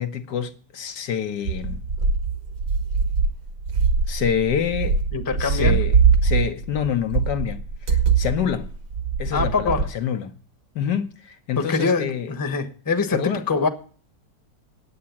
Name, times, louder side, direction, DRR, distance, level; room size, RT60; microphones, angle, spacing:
voice 1, 0.0-1.8 4.1-5.0 5.4-5.9 6.2-7.6 7.9-8.7 9.2-10.3 10.7-12.3 13.1-13.4, left 8 dB, 75° left, 1.5 m, -26 dB
sound 1, 1.4-9.8, right 5 dB, 60° right, 1.6 m, -22 dB
voice 2, 5.1-5.8 9.3-9.9 11.6-13.7, left 4 dB, 15° left, 0.9 m, -24 dB
9.8 x 8.6 x 7.1 m
omnidirectional pair, 1.9 m